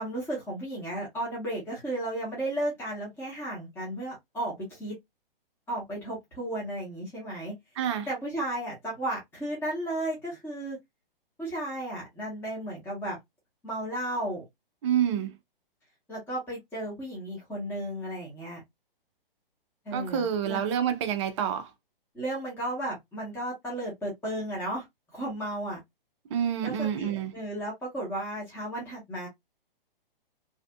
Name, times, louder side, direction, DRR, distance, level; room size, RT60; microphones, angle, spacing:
voice 1, 0.0-5.0 5.7-7.5 8.1-10.8 11.4-13.2 13.6-14.4 16.1-18.6 19.8-20.6 22.1-24.8 25.1-25.8 26.6-29.3, right 1 dB, 10° left, 1.0 m, -34 dB
voice 2, 7.8-8.1 14.8-15.3 19.9-21.7 26.3-27.3, right 9 dB, 30° right, 0.5 m, -28 dB
2.7 x 2.4 x 2.2 m
hypercardioid pair, 130°, 29 cm